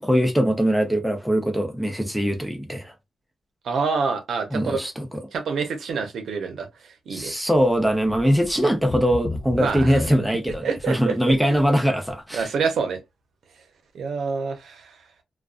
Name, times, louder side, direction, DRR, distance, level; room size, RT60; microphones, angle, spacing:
voice 1, 0.0-2.9 4.5-5.2 7.1-12.5, equal, ahead, 0.6 m, -22 dB
voice 2, 3.6-4.8 5.3-7.3 9.6-10.0 10.6-11.4 12.3-13.0 13.9-15.0, right 5 dB, 75° right, 0.7 m, -27 dB
sound 1, 8.4-8.5 8.9-10.8 11.3-11.7 12.1-12.2, left 3 dB, 45° left, 0.4 m, -32 dB
2.4 x 2.3 x 2.4 m
cardioid pair, 95°, 0 cm